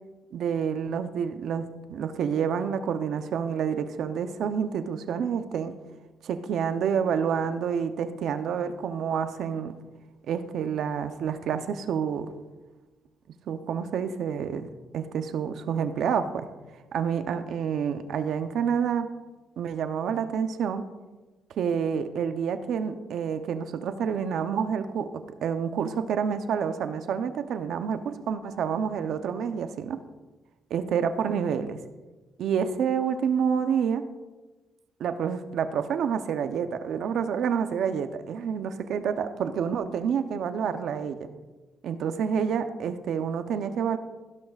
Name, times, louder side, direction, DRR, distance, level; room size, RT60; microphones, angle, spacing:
voice 1, 0.3-5.7 6.2-9.8 10.3-12.3 13.5-14.7 14.9-16.5 16.9-19.1 19.6-20.8 21.6-25.1 25.4-30.0 30.7-31.8 32.4-34.1 35.0-41.3 41.8-44.0, right 7 dB, 70° right, 9 dB, 0.7 m, -28 dB
16.5 x 11.5 x 2.5 m, 1.2 s
cardioid pair, 90°, 0 cm